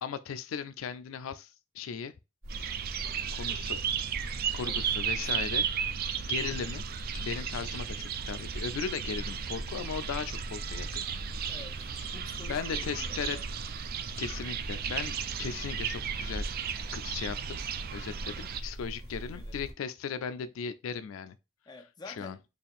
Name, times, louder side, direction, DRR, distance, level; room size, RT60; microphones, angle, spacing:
voice 1, 0.0-2.1 3.3-3.8 4.5-5.7 6.2-6.8 7.1-11.6 11.9-12.1 12.5-13.4 14.2-16.5 16.9-17.6 17.9-21.4 22.1-22.4, left 6 dB, 85° left, 0.4 m, -37 dB
sound 1, 2.4-19.7, equal, 85° right, 1.4 m, -42 dB
sound 2, 2.5-18.6, right 8 dB, 50° right, 0.3 m, -35 dB
voice 2, 4.6-5.6 11.5-13.5 18.2-18.5 19.0-19.6 21.7-22.4, left 3 dB, 20° left, 0.5 m, -50 dB
4.3 x 2.4 x 3.5 m
head